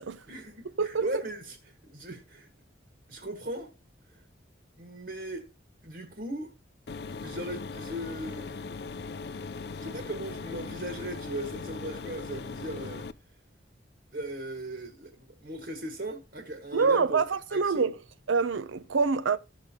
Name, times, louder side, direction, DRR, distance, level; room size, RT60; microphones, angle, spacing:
voice 1, 0.3-2.5 3.1-3.7 4.1-4.2 4.8-5.5 5.8-6.5 7.2-8.6 9.2-13.1 14.1-17.2 17.5-17.9, right 1 dB, 55° right, 1.6 m, -38 dB
sound 1, 6.9-13.1, left 4 dB, 55° left, 0.5 m, -39 dB
voice 2, 16.7-17.9 18.3-19.4, right 5 dB, 90° right, 0.6 m, -25 dB
16.0 x 6.4 x 2.9 m
head